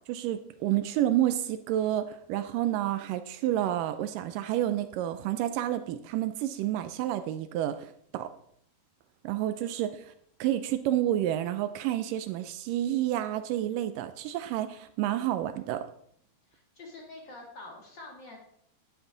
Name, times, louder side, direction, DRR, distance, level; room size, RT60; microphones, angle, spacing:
voice 1, 0.1-8.3 9.2-10.1 10.4-15.9, right 12 dB, 85° right, 10 dB, 1.9 m, -29 dB
voice 2, 16.5-18.4, left 2 dB, 35° left, -1 dB, 2.5 m, -46 dB
10.5 x 10.0 x 3.8 m, 0.66 s
omnidirectional pair, 4.5 m